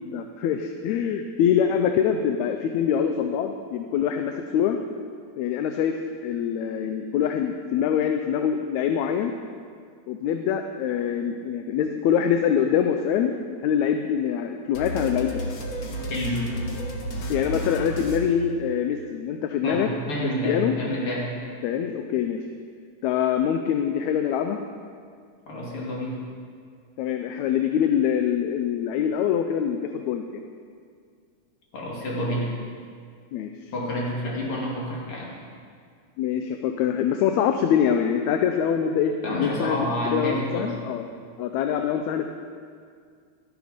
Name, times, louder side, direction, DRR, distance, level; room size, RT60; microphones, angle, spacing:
voice 1, 0.0-4.8 5.4-9.3 10.1-13.4 13.6-15.4 17.3-19.9 20.5-20.7 21.6-22.5 23.0-24.6 27.0-30.4 33.3-33.7 36.2-39.8 40.1-41.1 41.4-42.3, left 8 dB, 80° left, 6 dB, 1.8 m, -24 dB
sound 1, 14.7-19.1, equal, 65° left, 0.9 m, -32 dB
voice 2, 16.1-16.5 19.6-21.3 25.5-26.2 31.7-32.5 33.7-35.3 39.2-40.7, equal, 45° left, -4 dB, 3.1 m, -28 dB
12.5 x 10.5 x 5.1 m, 2.1 s
omnidirectional pair, 3.4 m